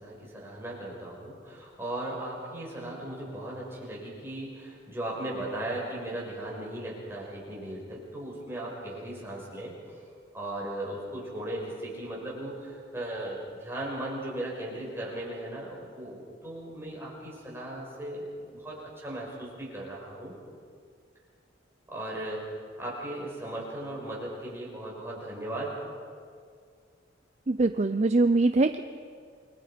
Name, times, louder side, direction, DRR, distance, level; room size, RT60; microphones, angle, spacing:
voice 1, 0.0-10.0 10.3-20.3 21.9-25.8, right 1 dB, 15° right, -4 dB, 6.1 m, -37 dB
voice 2, 27.5-28.8, right 3 dB, 35° right, 9 dB, 0.5 m, -23 dB
28.5 x 23.0 x 5.2 m, 2.1 s
head